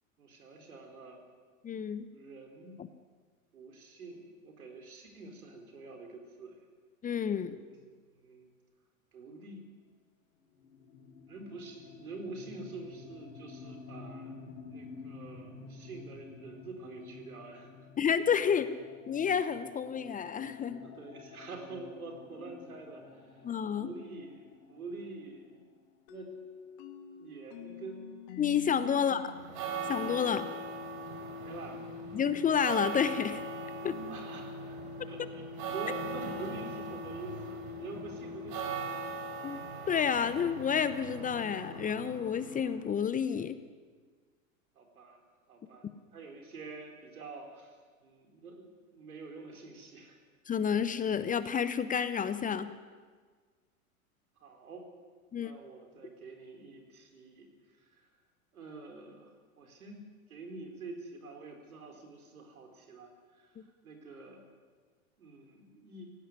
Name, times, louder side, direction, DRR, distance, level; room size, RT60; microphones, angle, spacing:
voice 1, 0.2-1.2 2.1-2.8 3.5-6.6 7.7-8.5 9.1-9.6 11.3-14.4 14.7-17.7 20.8-23.5 23.7-25.6 26.1-26.3 27.2-28.1 28.9-29.3 30.3-30.6 31.4-31.8 34.1-34.8 35.1-39.1 44.8-45.2 45.5-45.9 46.1-50.2 54.4-54.9 55.3-58.1 58.5-60.0 60.3-64.4 65.2-66.1, right 3 dB, 80° right, 4 dB, 4.5 m, -47 dB
voice 2, 1.6-2.1 7.0-7.6 18.0-18.8 19.1-20.8 23.4-23.9 28.4-29.3 29.9-30.5 32.1-33.4 33.8-34.0 39.4-39.6 39.9-43.6 50.5-52.7 55.3-55.5 63.6-63.7, left 7 dB, 20° left, 13 dB, 0.9 m, -30 dB
sound 1, 10.5-26.2, left 4 dB, 70° left, 3.8 m, -51 dB
sound 2, 26.1-30.8, left 7 dB, 50° left, 2.6 m, -48 dB
sound 3, 29.3-42.9, right 2 dB, 45° right, 4.9 m, -40 dB
18.0 x 16.5 x 9.6 m, 1.5 s
hypercardioid pair, 100°, 43 cm